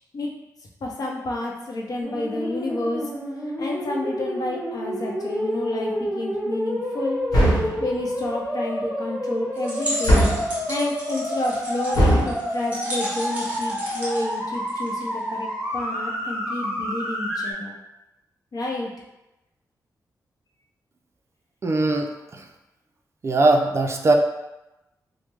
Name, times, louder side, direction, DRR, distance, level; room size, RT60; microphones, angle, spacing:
voice 1, 0.8-3.1 3.6-7.3 7.8-10.2 10.7-15.5 15.7-17.7 18.5-18.9, left 2 dB, 60° left, -1 dB, 0.6 m, -30 dB
sound 1, 2.0-17.5, equal, 5° right, 1.4 m, -29 dB
sound 2, 7.3-7.8 10.0-10.5 11.9-12.3, equal, 75° left, 0.9 m, -18 dB
sound 3, 9.6-15.2, equal, 20° right, 1.1 m, -34 dB
voice 2, 21.6-22.4 23.2-24.1, right 2 dB, 40° right, 4 dB, 0.3 m, -20 dB
3.2 x 2.0 x 3.2 m, 0.96 s
wide cardioid pair, 100°, 7 cm